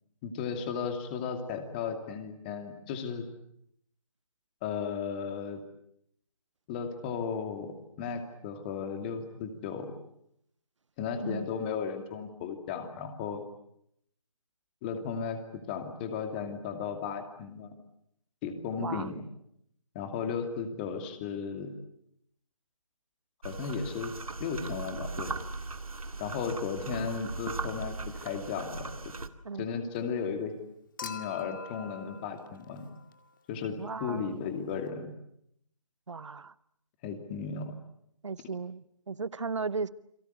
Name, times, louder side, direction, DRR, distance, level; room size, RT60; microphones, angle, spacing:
voice 1, 0.2-3.3 4.6-5.6 6.7-9.9 11.0-13.4 14.8-17.7 18.4-19.2 19.9-21.7 23.4-24.1 24.4-25.3 26.2-29.1 29.6-30.5 31.0-32.9 33.5-35.1 37.0-37.7, left 6 dB, 15° left, 2.5 m, -35 dB
voice 2, 18.8-19.1 29.4-29.7 33.8-34.4 36.1-36.5 38.2-39.9, right 4 dB, 60° right, 1.0 m, -36 dB
sound 1, 23.4-29.3, right 3 dB, 80° right, 2.1 m, -38 dB
Human group actions / Chink clink / Liquid, 31.0-33.4 34.9-35.0, left 5 dB, 35° left, 2.0 m, -44 dB
30.0 x 23.0 x 8.2 m
figure-of-eight pair, 155°, 18 cm